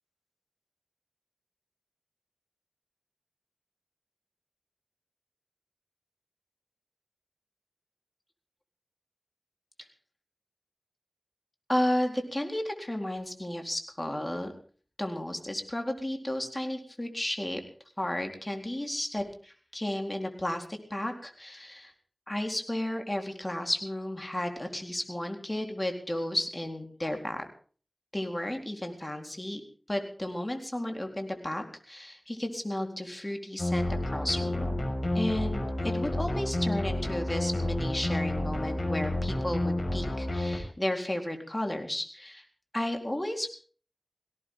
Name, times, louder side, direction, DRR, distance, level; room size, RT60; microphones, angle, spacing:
voice 1, 11.7-14.5 15.0-17.6 18.0-21.9 22.3-27.4 28.1-29.6 29.9-34.7 35.1-42.4 42.7-43.5, left 1 dB, 25° left, 4 dB, 4.0 m, -33 dB
sound 1, 33.6-40.6, left 1 dB, 55° left, 5.8 m, -30 dB
18.5 x 17.5 x 3.8 m, 0.42 s
wide cardioid pair, 45°, 0 cm